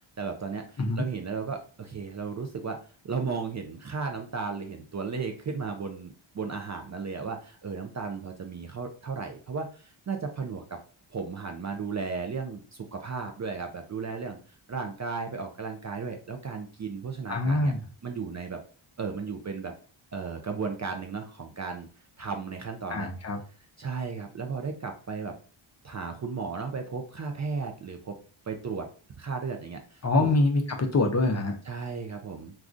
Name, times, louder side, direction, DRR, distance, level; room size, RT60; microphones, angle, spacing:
voice 1, 0.2-2.8 3.0-10.8 11.1-14.4 14.7-17.7 18.0-18.6 19.0-19.7 20.1-21.9 22.2-23.1 23.8-25.3 25.8-28.1 28.5-28.9 29.2-30.3 31.7-32.5, right 5 dB, 35° right, 4 dB, 0.4 m, -35 dB
voice 2, 17.3-17.8 22.9-23.4 30.0-31.6, left 2 dB, 35° left, 3 dB, 0.5 m, -25 dB
3.5 x 2.4 x 2.5 m, 0.40 s
wide cardioid pair, 80°, 50 cm